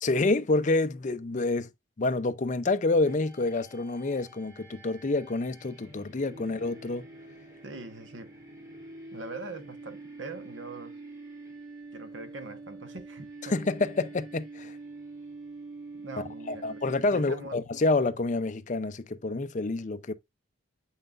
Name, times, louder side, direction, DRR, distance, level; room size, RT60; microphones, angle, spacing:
voice 1, 0.0-1.7 2.0-7.0 13.5-14.7 16.5-20.1, left 2 dB, 40° left, 0.6 m, -28 dB
sound 1, 3.0-17.5, right 2 dB, 15° right, 2.6 m, -46 dB
voice 2, 7.6-8.3 9.1-11.0 11.9-13.6 15.9-16.8 17.1-17.6, right 3 dB, 75° right, 1.2 m, -42 dB
7.7 x 5.7 x 2.5 m
head